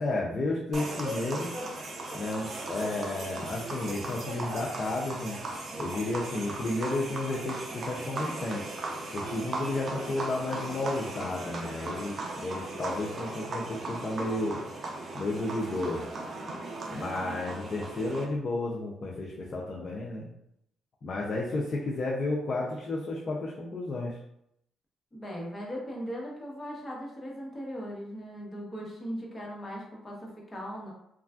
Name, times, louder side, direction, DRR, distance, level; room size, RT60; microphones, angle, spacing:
voice 1, 0.0-1.6 2.1-5.4 5.8-8.7 9.1-14.6 15.1-16.1 16.9-20.3 21.0-24.2, left 2 dB, 45° left, -3 dB, 0.5 m, -32 dB
sound 1, 0.7-18.2, right 2 dB, 45° right, 0.6 m, -37 dB
voice 2, 25.1-30.9, equal, 20° left, -3 dB, 1.0 m, -38 dB
3.2 x 2.4 x 2.4 m, 0.78 s
cardioid pair, 90°, 0 cm